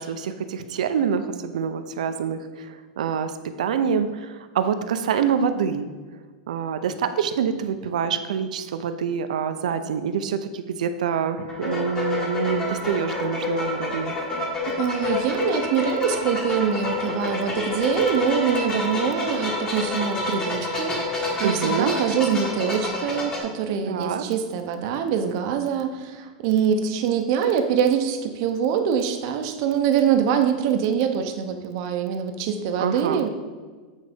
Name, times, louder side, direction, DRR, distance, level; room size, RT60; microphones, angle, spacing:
voice 1, 0.0-5.9 6.5-14.2 21.4-21.9 23.9-24.2 32.8-33.2, right 7 dB, 85° right, 9 dB, 0.7 m, -26 dB
sound 1, 11.5-23.4, left 3 dB, 15° left, 1.4 m, -28 dB
voice 2, 14.8-21.0 21.4-33.3, right 7 dB, 45° right, 6 dB, 0.7 m, -24 dB
8.3 x 4.0 x 5.2 m, 1.4 s
supercardioid pair, 170°, 4 cm